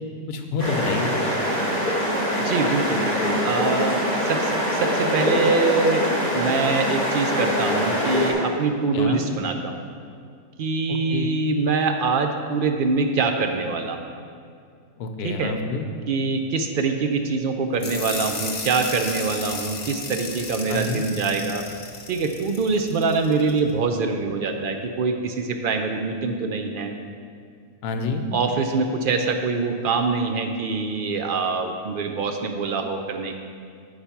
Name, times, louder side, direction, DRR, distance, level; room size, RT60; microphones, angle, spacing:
voice 1, 0.3-1.2 8.9-9.2 10.9-11.3 15.0-15.9 20.7-21.0 27.8-28.3, left 4 dB, 85° left, 5 dB, 1.3 m, -28 dB
sound 1, 0.6-8.3, equal, 30° right, 2.3 m, -23 dB
voice 2, 2.4-9.8 10.6-14.0 15.2-15.5 16.1-21.7 22.1-27.0 28.3-33.4, right 4 dB, 75° right, 5 dB, 0.4 m, -24 dB
sound 2, 17.8-23.6, left 4 dB, 45° left, 1.1 m, -34 dB
8.0 x 5.9 x 5.7 m, 2.3 s
omnidirectional pair, 1.6 m